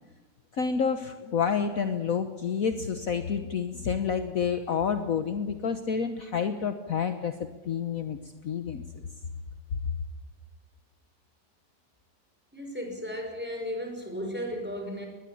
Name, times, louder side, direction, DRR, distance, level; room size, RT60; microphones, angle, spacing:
voice 1, 0.5-7.3 7.6-8.2 8.4-8.8, left 6 dB, 55° left, 8 dB, 1.4 m, -29 dB
voice 2, 12.5-15.1, equal, 5° right, 2 dB, 5.7 m, -35 dB
22.0 x 20.0 x 8.7 m, 1.3 s
omnidirectional pair, 1.9 m